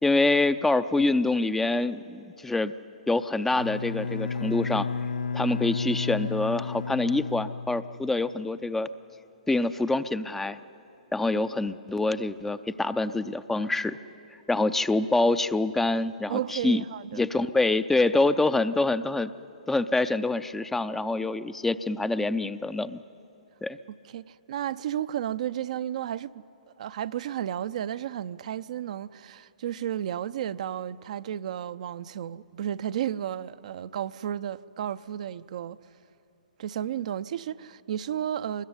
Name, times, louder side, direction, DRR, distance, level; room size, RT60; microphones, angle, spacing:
voice 1, 0.0-2.7 3.1-4.9 5.3-8.9 9.5-10.6 11.1-14.0 14.5-16.8 17.1-19.3 19.7-23.0 23.6-23.8, left 2 dB, 5° left, 0.5 m, -26 dB
Bowed string instrument, 3.5-8.3, left 5 dB, 75° left, 0.6 m, -32 dB
voice 2, 16.3-17.2 23.9-26.4 26.8-35.8 36.6-38.7, right 10 dB, 55° right, 0.6 m, -33 dB
24.0 x 20.5 x 9.7 m
figure-of-eight pair, 125°, 5 cm